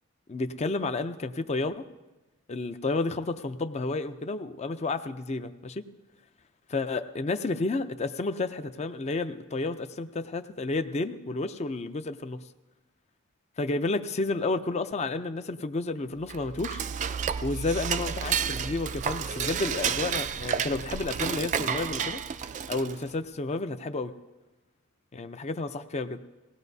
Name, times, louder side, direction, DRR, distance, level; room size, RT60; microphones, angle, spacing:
voice 1, 0.3-1.9 2.5-5.8 6.7-12.4 13.6-16.8 17.4-22.2 22.7-24.1 25.1-26.2, left 3 dB, 30° left, 10 dB, 0.4 m, -31 dB
Dishes pots and pans / Cutlery silverware, 16.2-23.1, right 7 dB, 35° right, 0.3 m, -31 dB
19.5 x 17.0 x 2.7 m, 1.1 s
head